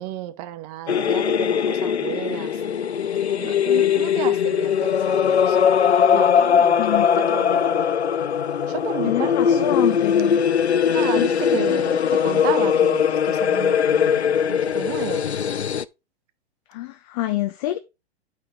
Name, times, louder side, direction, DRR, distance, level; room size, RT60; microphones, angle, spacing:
voice 1, 0.0-2.6 3.3-5.7 6.1-7.7 8.7-10.0 10.9-15.3, right 13 dB, 35° right, 1.0 m, -33 dB
sound 1, 0.9-15.8, left 8 dB, 80° left, 0.6 m, -20 dB
voice 2, 9.0-10.4 11.2-11.3 16.7-17.8, left 15 dB, 35° left, 0.8 m, -26 dB
8.7 x 4.5 x 4.7 m
figure-of-eight pair, 110°, 32 cm